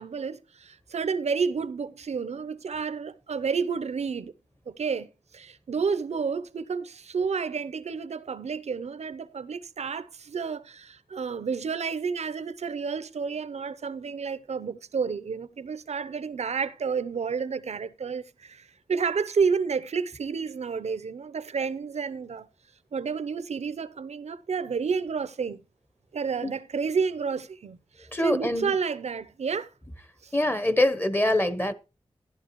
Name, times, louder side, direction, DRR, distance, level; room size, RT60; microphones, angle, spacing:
voice 1, 0.0-4.3 4.7-22.5 22.9-25.6 26.1-29.7 30.2-30.3, right 5 dB, 80° right, 0.7 m, -30 dB
voice 2, 28.1-28.7 30.3-31.7, left 1 dB, 20° left, 1.0 m, -24 dB
13.0 x 11.0 x 3.0 m
cardioid pair, 50°, 11 cm